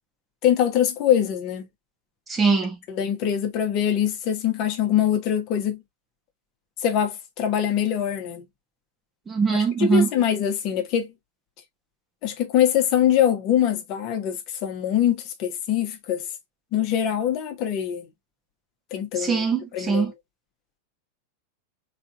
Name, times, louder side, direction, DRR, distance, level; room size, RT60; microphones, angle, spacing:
voice 1, 0.4-1.7 2.9-5.8 6.8-8.4 9.5-11.1 12.2-16.3 16.7-18.1 18.9-19.4 19.7-20.1, left 10 dB, 40° left, 1.1 m, -23 dB
voice 2, 2.3-2.8 9.3-10.1 19.2-20.1, right 5 dB, 15° right, 0.9 m, -22 dB
3.9 x 3.4 x 2.4 m
figure-of-eight pair, 90°, 0 cm